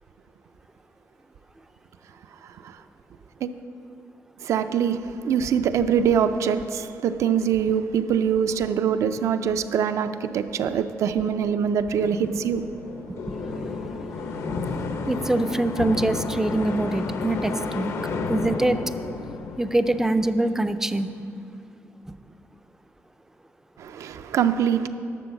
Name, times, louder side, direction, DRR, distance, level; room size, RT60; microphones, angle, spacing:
voice 1, 4.4-12.6 23.8-24.9, right 8 dB, 70° right, 0.5 m, -23 dB
sound 1, 11.9-20.7, left 4 dB, 70° left, 0.7 m, -32 dB
voice 2, 15.1-17.9 18.3-18.8 19.6-21.1 22.1-22.2, right 1 dB, 10° right, 0.3 m, -24 dB
11.5 x 7.0 x 5.9 m
cardioid pair, 145°, 5 cm